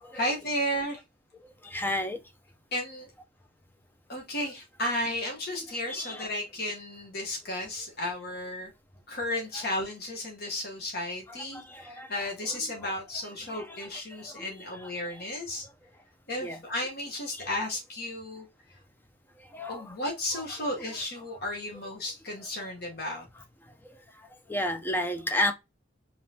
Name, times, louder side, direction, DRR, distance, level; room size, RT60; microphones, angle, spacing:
voice 1, 0.1-1.0 2.7-3.1 4.1-8.7 9.1-15.7 16.3-18.5 19.7-23.3, left 1 dB, 50° left, 1.1 m, -33 dB
voice 2, 1.6-2.2 5.9-6.3 11.5-12.1 13.5-13.8 14.2-14.4 14.8-14.9 16.4-16.6 17.4-17.5 19.5-19.9 24.5-25.5, left 1 dB, 10° left, 0.5 m, -32 dB
5.1 x 3.0 x 2.7 m
head